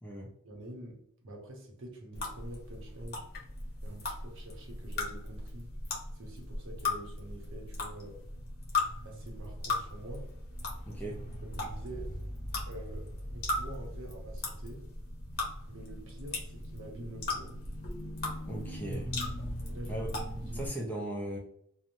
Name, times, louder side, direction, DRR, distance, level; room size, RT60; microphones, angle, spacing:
voice 1, 0.4-3.2 3.8-5.7 6.1-8.2 9.0-10.2 11.4-12.1 12.7-14.8 15.7-17.5 19.7-20.1 20.4-20.7, right 1 dB, 60° right, 0 dB, 0.8 m, -46 dB
sound 1, 2.1-20.7, left 2 dB, 45° left, 0.7 m, -38 dB
voice 2, 10.9-11.2 18.4-19.1 19.9-20.1 20.5-21.4, right 1 dB, 10° left, -2 dB, 0.4 m, -38 dB
3.0 x 2.0 x 2.5 m, 0.72 s
head